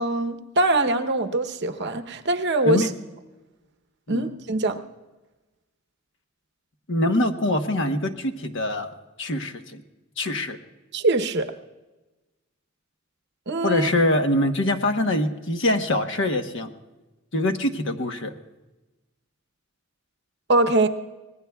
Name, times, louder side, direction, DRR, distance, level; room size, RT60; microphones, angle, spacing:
voice 1, 0.0-2.9 4.1-4.8 10.9-11.5 13.5-13.9 20.5-20.9, right 2 dB, 55° right, 8 dB, 0.9 m, -23 dB
voice 2, 6.9-9.8 10.2-10.6 13.6-16.7 17.3-18.4, left 1 dB, 60° left, 6 dB, 1.1 m, -24 dB
24.5 x 19.0 x 2.3 m, 1.1 s
head